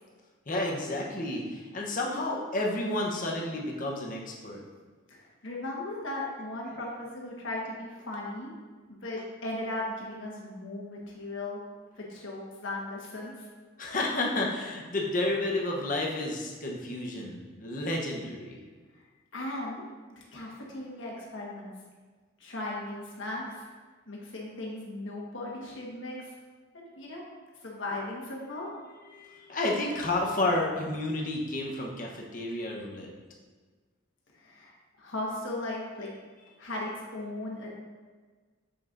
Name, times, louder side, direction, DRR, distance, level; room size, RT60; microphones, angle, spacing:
voice 1, 0.5-4.6 13.8-18.6 29.1-33.1, left 2 dB, 40° left, -1 dB, 0.9 m, -31 dB
voice 2, 5.1-8.5 8.9-11.6 12.0-13.5 19.3-19.8 20.2-21.7 22.4-23.6 24.1-26.3 26.7-27.2 27.6-28.7 34.3-34.7 35.0-36.1 36.6-37.7, left 2 dB, 65° left, -3 dB, 1.4 m, -37 dB
7.0 x 6.2 x 2.6 m, 1.4 s
head